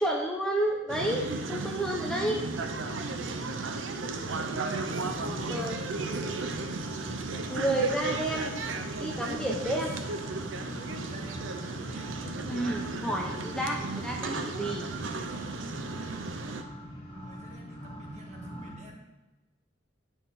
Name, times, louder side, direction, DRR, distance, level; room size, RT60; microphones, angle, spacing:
voice 1, 0.0-2.4 5.5-6.4 7.5-8.6 9.0-9.9 12.5-14.8, right 1 dB, 5° left, -1 dB, 0.7 m, -31 dB
sound 1, 0.9-16.6, right 3 dB, 90° right, 0.7 m, -35 dB
voice 2, 1.1-1.5 2.0-2.3 4.9-5.6 9.5-9.8 10.9-12.2 17.1-19.0, right 1 dB, 35° right, -1 dB, 1.5 m, -47 dB
sound 2, 2.8-18.7, equal, 25° left, 1.5 m, -44 dB
9.0 x 5.8 x 4.2 m, 1.1 s
head